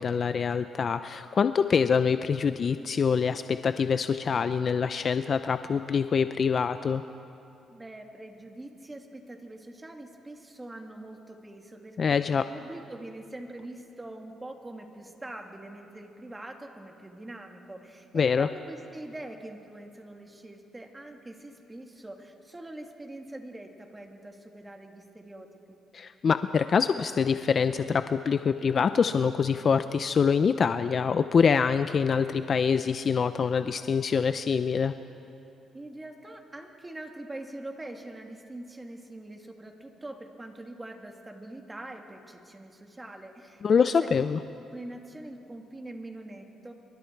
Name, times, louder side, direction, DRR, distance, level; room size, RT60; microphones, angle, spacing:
voice 1, 0.0-7.0 12.0-12.4 18.1-18.5 25.9-34.9 43.6-44.4, left 6 dB, 45° left, 11 dB, 0.5 m, -25 dB
voice 2, 7.7-25.8 35.7-44.3 44.7-46.7, right 1 dB, 15° right, 3 dB, 2.4 m, -43 dB
27.5 x 23.5 x 4.7 m, 2.8 s
cardioid pair, 90°, 0 cm